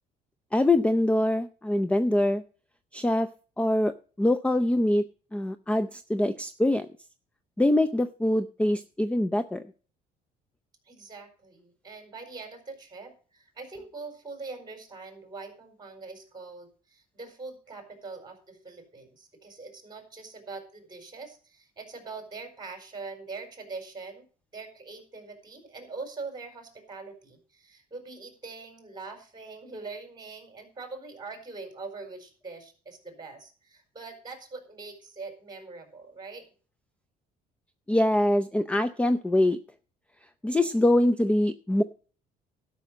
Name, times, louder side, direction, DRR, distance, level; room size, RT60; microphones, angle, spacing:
voice 1, 0.5-2.4 2.9-3.3 3.6-3.9 4.2-5.0 5.3-6.9 7.6-9.6 37.9-39.6 40.4-41.8, left 1 dB, 5° left, 12 dB, 0.5 m, -24 dB
voice 2, 10.8-24.2 24.5-36.4, right 3 dB, 25° right, 5 dB, 4.3 m, -43 dB
12.0 x 6.3 x 7.4 m, 0.39 s
cardioid pair, 110°, 17 cm